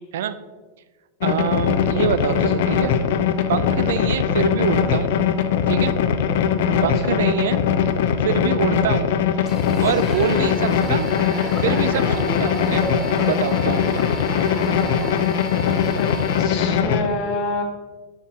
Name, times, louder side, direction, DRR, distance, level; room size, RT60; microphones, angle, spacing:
sound 1, 1.2-17.1, left 7 dB, 60° left, 0.7 m, -21 dB
voice 1, 1.2-2.9 3.5-5.1 5.7-6.0 6.8-7.6 8.2-9.2 9.8-11.1 11.6-12.8 13.2-14.0, right 8 dB, 75° right, 12 dB, 0.5 m, -25 dB
voice 2, 1.9-2.4 6.7-7.2 15.9-17.6, left 3 dB, 35° left, 1 dB, 1.7 m, -28 dB
sound 2, 9.5-16.8, left 1 dB, 10° left, 1.2 m, -36 dB
sound 3, 9.7-15.2, equal, 10° right, 2.0 m, -32 dB
12.0 x 5.8 x 2.9 m, 1.3 s
supercardioid pair, 160°, 0 cm